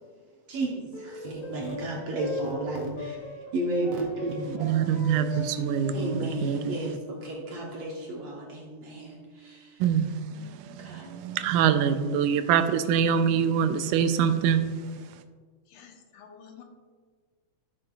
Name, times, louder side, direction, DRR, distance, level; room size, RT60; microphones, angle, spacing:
voice 1, 0.5-3.2 3.5-4.7 5.3-5.4 5.9-9.8 10.8-11.1 11.7-11.8, right 2 dB, 65° right, -1 dB, 1.7 m, -33 dB
sound 1, 0.9-9.5, equal, 40° left, 2.3 m, -40 dB
voice 2, 4.6-6.7 9.8-14.6, right 8 dB, 85° right, 10 dB, 2.1 m, -25 dB
voice 3, 15.7-16.6, left 7 dB, 80° left, 3 dB, 2.4 m, -50 dB
14.0 x 6.7 x 2.4 m, 1.5 s
omnidirectional pair, 3.6 m